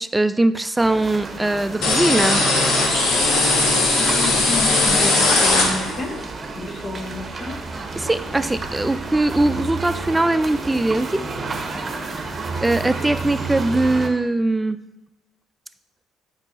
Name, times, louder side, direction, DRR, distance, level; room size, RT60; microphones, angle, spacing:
voice 1, 0.0-2.5 8.0-11.2 12.6-14.8, right 2 dB, 15° right, 13 dB, 0.4 m, -21 dB
sound 1, 0.8-14.1, right 3 dB, 35° right, 0.9 m, -31 dB
sound 2, 1.8-6.2, left 2 dB, 65° left, 1.4 m, -18 dB
voice 2, 4.0-5.1 5.4-6.3 6.5-7.6, left 2 dB, 45° left, 5 dB, 1.0 m, -30 dB
8.1 x 5.5 x 2.6 m, 0.99 s
hypercardioid pair, 60°, 0 cm